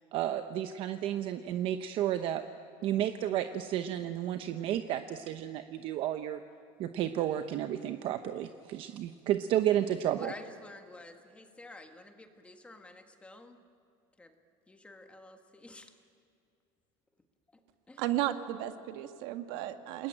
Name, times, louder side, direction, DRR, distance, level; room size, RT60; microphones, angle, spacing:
voice 1, 0.1-2.4 2.8-6.4 6.8-10.3, right 11 dB, 45° right, 9 dB, 0.9 m, -32 dB
voice 2, 10.0-13.6 14.2-14.3 14.7-16.0 17.5-17.6 17.9-18.0, left 2 dB, 10° left, 5 dB, 1.7 m, -50 dB
voice 3, 18.0-20.1, right 13 dB, 70° right, 8 dB, 1.7 m, -34 dB
29.5 x 20.5 x 9.0 m, 2.4 s
cardioid pair, 160°, 13 cm